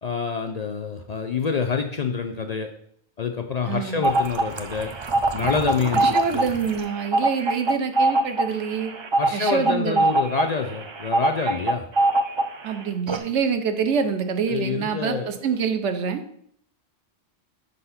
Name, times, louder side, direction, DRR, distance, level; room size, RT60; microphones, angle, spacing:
voice 1, 0.0-2.7 3.2-4.9 5.3-6.5 9.2-11.8 14.5-15.5, left 5 dB, 55° left, 4 dB, 0.4 m, -27 dB
voice 2, 3.7-4.1 5.9-8.9 9.3-10.1 12.6-16.2, right 6 dB, 90° right, 8 dB, 1.0 m, -26 dB
sound 1, 4.0-12.7 13.1-13.2, right 2 dB, 45° right, 0.3 m, -23 dB
5.4 x 4.1 x 5.6 m, 0.66 s
omnidirectional pair, 1.2 m